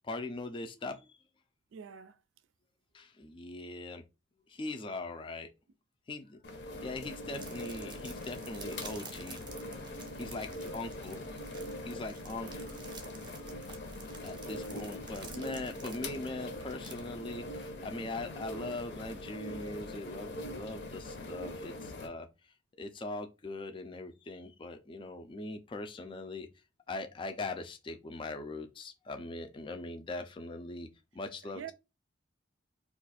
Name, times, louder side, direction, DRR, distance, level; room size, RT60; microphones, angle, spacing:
voice 1, 0.0-1.2 2.9-4.0 4.5-5.5 6.1-6.4 6.8-9.4 10.2-11.2 11.9-12.5 14.2-22.3 22.8-26.5 26.9-30.9 31.1-31.7, left 2 dB, 25° left, 0.3 m, -41 dB
voice 2, 1.7-2.2 10.3-10.6 12.2-12.6 31.4-31.7, right 8 dB, 85° right, 0.3 m, -48 dB
sound 1, 6.4-22.1, left 1 dB, 60° left, 0.6 m, -42 dB
sound 2, 7.3-19.0, right 4 dB, 25° right, 0.5 m, -52 dB
2.5 x 2.3 x 4.0 m
head